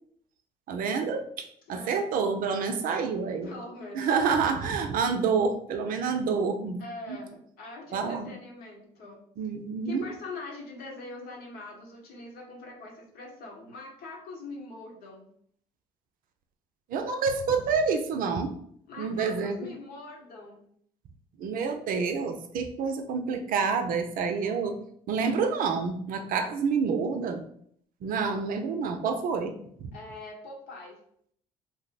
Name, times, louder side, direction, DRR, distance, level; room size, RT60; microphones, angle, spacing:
voice 1, 0.7-3.5 3.9-6.8 7.1-7.2 7.9-8.3 9.4-10.0 16.9-18.5 19.0-19.7 21.4-24.8 25.1-27.4 28.0-29.9, right 5 dB, 60° right, 6 dB, 0.5 m, -28 dB
voice 2, 1.7-2.1 3.4-4.1 6.8-9.2 9.8-15.3 18.9-20.6 26.4-26.5 29.9-31.0, left 2 dB, 70° left, 0 dB, 0.9 m, -43 dB
2.7 x 2.0 x 4.0 m, 0.66 s
hypercardioid pair, 60°, 16 cm